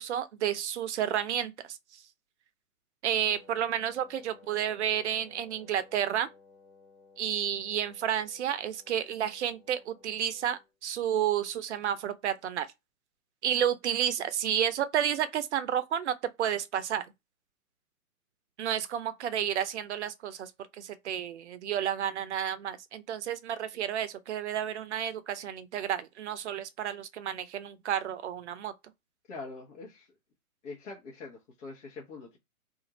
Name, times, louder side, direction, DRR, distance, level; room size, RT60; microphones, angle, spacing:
voice 1, 0.0-2.0 3.0-6.3 7.2-12.7 13.4-17.1 18.6-28.7, right 10 dB, 50° right, 0.5 m, -31 dB
Wind instrument woodwind instrument, 3.1-10.7, left 4 dB, 10° left, 0.4 m, -58 dB
voice 2, 29.3-30.1 30.6-32.4, left 3 dB, 55° left, 1.0 m, -43 dB
2.5 x 2.5 x 2.9 m
hypercardioid pair, 130°, 45 cm